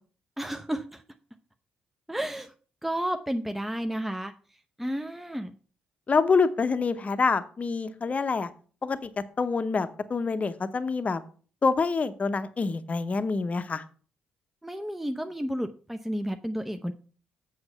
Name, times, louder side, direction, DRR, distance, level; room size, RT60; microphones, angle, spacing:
voice 1, 0.4-1.0 2.1-2.5 2.8-4.3 4.8-5.5 14.6-16.9, equal, 5° right, 6 dB, 0.6 m, -31 dB
voice 2, 6.1-8.5 8.8-9.1 9.4-11.2 11.6-13.8, left 4 dB, 30° left, 11 dB, 0.8 m, -26 dB
7.9 x 5.7 x 5.5 m, 0.40 s
figure-of-eight pair, 40°, 4 cm